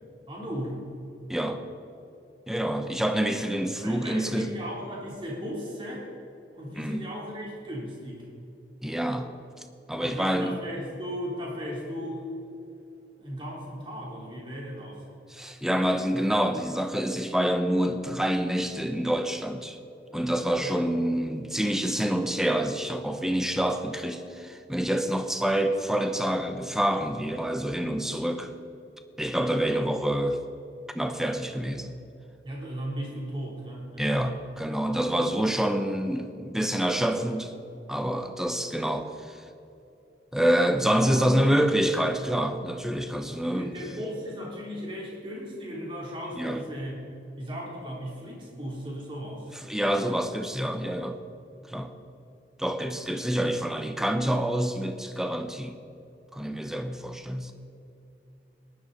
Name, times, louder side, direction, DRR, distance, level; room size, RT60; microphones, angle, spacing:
voice 1, 0.3-0.8 3.8-6.1 6.5-8.3 10.0-12.2 13.2-15.0 20.6-20.8 32.4-34.4 41.0-41.6 43.4-47.0 47.4-49.5, equal, 30° right, -3 dB, 3.3 m, -36 dB
voice 2, 1.3-1.6 2.5-4.5 6.8-7.0 8.8-9.4 9.9-10.6 15.3-19.8 20.1-28.5 29.2-30.4 30.9-31.9 34.0-37.5 37.9-39.4 40.3-43.7 46.4-46.6 49.6-51.2 51.7-51.9 52.6-55.8 56.3-57.5, equal, 5° right, 7 dB, 0.7 m, -27 dB
18.0 x 11.5 x 4.1 m, 2.8 s
head